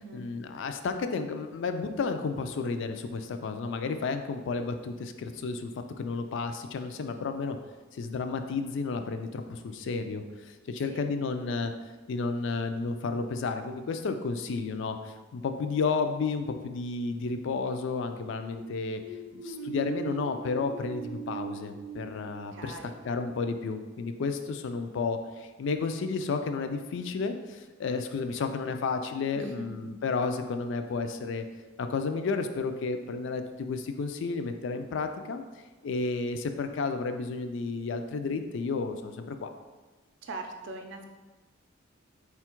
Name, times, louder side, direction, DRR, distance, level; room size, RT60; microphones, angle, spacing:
voice 1, 0.0-5.7 6.0-7.6 7.9-11.7 12.1-19.0 19.3-31.4 31.8-35.4 35.8-39.5, left 4 dB, 65° left, 7 dB, 0.3 m, -32 dB
sound 1, 17.8-23.4, right 4 dB, 85° left, 1.1 m, -41 dB
voice 2, 22.5-23.0 29.3-29.7 40.2-41.0, right 3 dB, 60° right, 4 dB, 0.5 m, -41 dB
4.3 x 2.3 x 4.3 m, 1.2 s
head